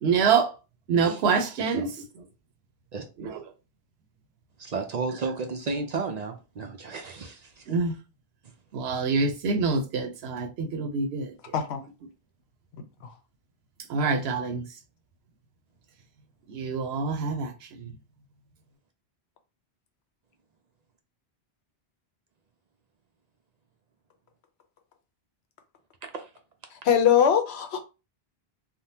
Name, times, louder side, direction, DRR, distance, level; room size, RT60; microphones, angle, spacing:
voice 1, 0.0-0.5 0.9-1.9 3.2-3.4 7.7-7.9 8.7-11.3 13.9-14.6 16.5-17.9, right 5 dB, 80° right, 0.9 m, -26 dB
voice 2, 4.6-7.7 26.0-26.3, right 4 dB, 55° right, 0.5 m, -33 dB
voice 3, 26.8-27.8, left 8 dB, 90° left, 0.9 m, -21 dB
3.6 x 2.1 x 2.7 m
omnidirectional pair, 1.1 m